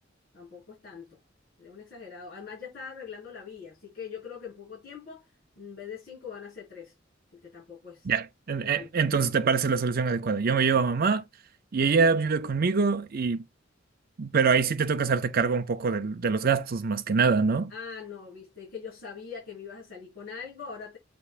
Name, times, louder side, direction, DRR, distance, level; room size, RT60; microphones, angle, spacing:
voice 1, 0.3-1.2 1.6-5.2 5.6-6.9 7.3-8.1 8.7-8.9 17.7-21.0, left 6 dB, 50° left, 4.7 m, -42 dB
voice 2, 8.1-11.2 11.7-13.4 14.2-17.7, right 5 dB, 50° right, 0.5 m, -24 dB
7.6 x 5.2 x 2.5 m
head